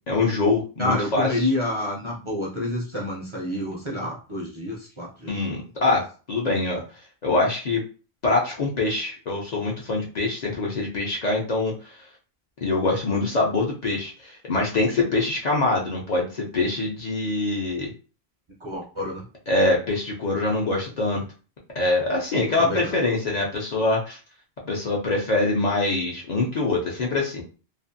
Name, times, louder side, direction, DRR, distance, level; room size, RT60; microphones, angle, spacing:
voice 1, 0.1-1.5 5.3-6.8 7.2-7.8 8.2-11.9 12.6-17.9 19.5-21.2 21.7-24.2 24.6-27.4, left 2 dB, 50° left, -2 dB, 0.6 m, -24 dB
voice 2, 0.8-5.4 18.6-19.2 22.6-23.0, left 1 dB, 40° right, -3 dB, 0.4 m, -28 dB
2.5 x 2.4 x 2.6 m, 0.36 s
omnidirectional pair, 1.1 m